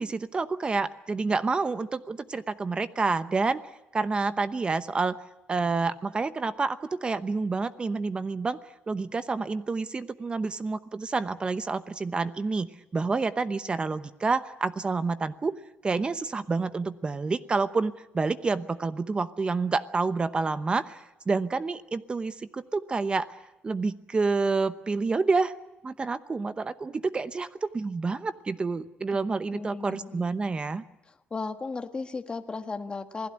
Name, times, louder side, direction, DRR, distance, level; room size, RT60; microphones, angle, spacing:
voice 1, 0.0-3.6 3.9-5.2 5.5-8.6 8.9-12.7 12.9-15.6 15.8-21.0 21.3-23.3 23.6-25.5 25.8-30.8, right 4 dB, 25° right, 12 dB, 0.9 m, -28 dB
voice 2, 29.5-30.2 31.3-33.3, left 4 dB, 25° left, 6 dB, 1.5 m, -35 dB
27.5 x 17.0 x 9.7 m, 0.92 s
cardioid pair, 110°, 4 cm